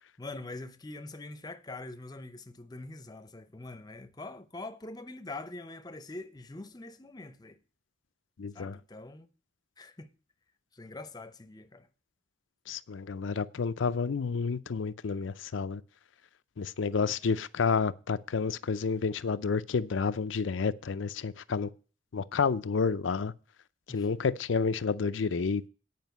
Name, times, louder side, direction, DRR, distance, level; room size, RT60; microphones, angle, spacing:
voice 1, 0.2-7.6 8.5-9.3 9.8-10.1 10.7-11.9 23.9-24.1, left 2 dB, 20° left, 0.7 m, -44 dB
voice 2, 8.4-8.8 12.7-15.8 16.6-21.7 22.1-23.3 23.9-25.6, left 5 dB, 85° left, 0.5 m, -30 dB
9.3 x 5.1 x 7.9 m
head